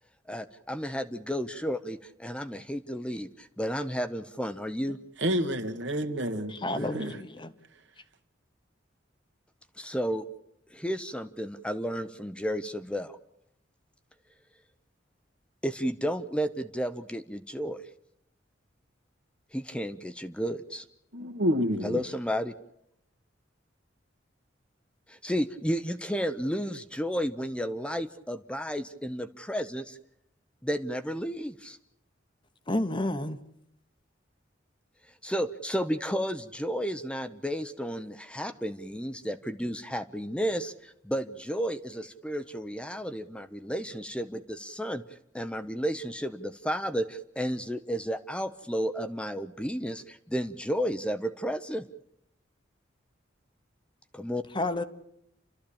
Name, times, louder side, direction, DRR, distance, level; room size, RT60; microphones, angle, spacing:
voice 1, 0.3-5.0 9.8-10.2 10.7-13.2 15.6-17.8 19.5-20.8 21.8-22.5 25.1-30.0 30.6-31.8 35.2-45.0 45.3-51.9 54.1-54.4, equal, 5° left, 0.8 m, -32 dB
voice 2, 5.2-7.1 21.1-22.0, equal, 70° right, 1.8 m, -29 dB
voice 3, 6.5-7.5 32.7-33.4 54.5-54.8, left 1 dB, 25° left, 1.1 m, -30 dB
29.5 x 13.5 x 8.6 m
head